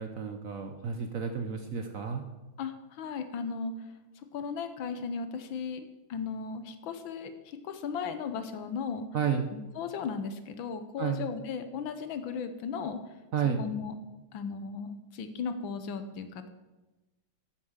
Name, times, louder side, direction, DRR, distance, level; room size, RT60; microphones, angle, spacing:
voice 1, 0.0-2.2 9.1-9.5 11.0-11.2 13.3-13.6, right 7 dB, 60° right, 5 dB, 0.9 m, -31 dB
voice 2, 2.6-3.7 4.3-9.1 9.5-13.0 13.6-13.9 14.3-16.5, left 6 dB, 75° left, 9 dB, 1.7 m, -36 dB
8.7 x 7.1 x 7.3 m, 1.1 s
omnidirectional pair, 2.2 m